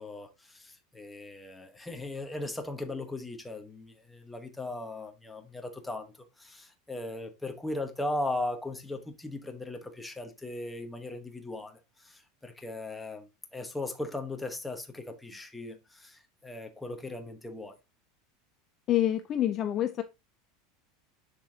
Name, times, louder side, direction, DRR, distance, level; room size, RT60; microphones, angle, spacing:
voice 1, 0.0-17.8, left 2 dB, 5° left, 1.0 m, -38 dB
voice 2, 18.9-20.0, left 12 dB, 25° left, 0.4 m, -27 dB
6.8 x 6.5 x 2.7 m
supercardioid pair, 180°, 0 cm